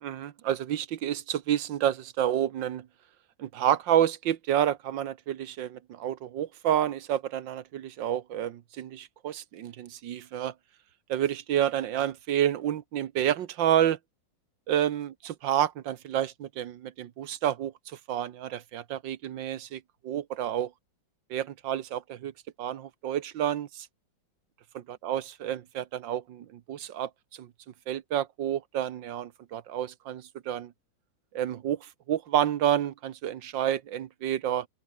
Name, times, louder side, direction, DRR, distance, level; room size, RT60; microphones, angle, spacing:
voice 1, 0.0-2.9 3.4-10.5 11.1-14.0 14.7-17.7 18.1-20.7 21.3-22.3 22.6-23.9 25.0-27.5 27.9-30.7 31.3-34.7, right 11 dB, 80° right, 1.7 m, -29 dB
open air
omnidirectional pair, 2.0 m